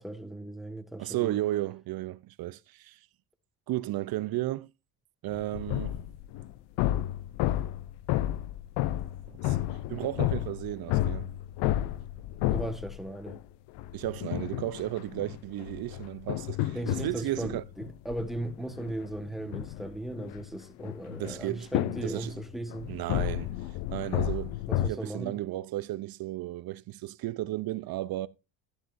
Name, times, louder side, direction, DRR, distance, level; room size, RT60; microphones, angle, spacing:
voice 1, 0.0-1.4 12.5-13.4 16.7-22.9 24.7-25.3, right 1 dB, ahead, 1.4 m, -37 dB
voice 2, 1.0-3.0 3.7-4.7 5.2-6.0 9.4-9.6 9.9-11.3 13.9-17.6 21.2-21.7 22.0-22.3 22.9-23.5 23.9-28.3, right 15 dB, 65° right, 0.7 m, -34 dB
sound 1, 5.3-13.4 13.8-24.9, left 14 dB, 85° left, 0.7 m, -32 dB
11.5 x 11.5 x 2.6 m
cardioid pair, 90°, 40 cm